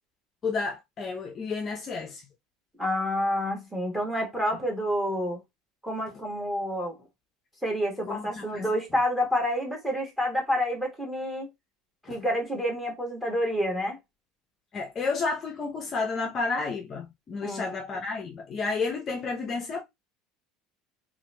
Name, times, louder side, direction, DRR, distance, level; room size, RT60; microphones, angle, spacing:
voice 1, 0.4-2.2 8.1-8.6 12.0-12.2 14.7-19.8, left 4 dB, 30° left, 0.5 m, -31 dB
voice 2, 2.8-5.4 5.8-7.0 7.6-11.5 12.1-14.0 17.4-17.8, equal, 5° right, 1.1 m, -28 dB
2.8 x 2.5 x 3.1 m
cardioid pair, 150°, 0 cm